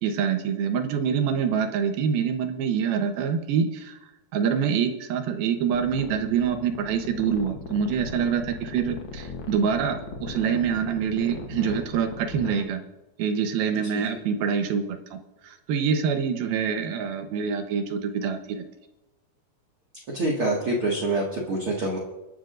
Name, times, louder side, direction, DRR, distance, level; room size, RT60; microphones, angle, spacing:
voice 1, 0.0-4.0 4.3-12.8 13.2-15.2 15.4-18.6, right 7 dB, 80° right, 6 dB, 3.0 m, -26 dB
sound 1, 5.7-12.6, left 4 dB, 75° left, 1.0 m, -37 dB
voice 2, 20.1-22.0, right 2 dB, 45° right, -3 dB, 2.3 m, -25 dB
29.0 x 11.0 x 2.6 m, 1.1 s
omnidirectional pair, 4.2 m